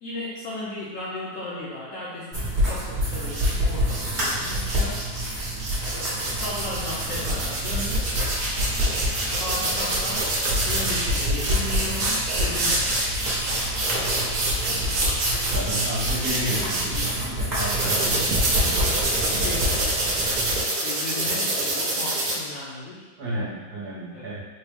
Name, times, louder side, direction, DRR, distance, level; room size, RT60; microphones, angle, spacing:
voice 1, 0.0-5.0 5.9-8.2 8.8-10.3 10.7-14.2 19.2-19.9 20.1-23.1 24.1-24.3, left 2 dB, 70° left, -6 dB, 0.7 m, -36 dB
sound 1, 2.3-20.6, equal, 35° right, 0.8 m, -28 dB
sound 2, 3.3-3.5 3.9-17.1 17.5-22.3, right 2 dB, 80° right, 0.5 m, -26 dB
voice 2, 15.5-18.4 23.2-24.4, equal, 65° right, -6 dB, 1.3 m, -32 dB
4.3 x 2.1 x 3.5 m, 1.3 s
omnidirectional pair, 1.9 m